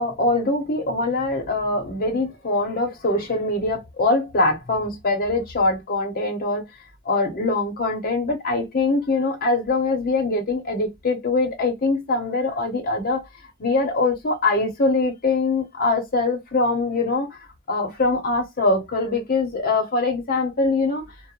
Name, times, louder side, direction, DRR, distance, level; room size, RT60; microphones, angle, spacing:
voice 1, 0.0-6.6 7.0-13.3 13.6-17.4 17.7-21.1, left 3 dB, 45° left, 0.8 m, -23 dB
2.4 x 2.1 x 2.9 m
head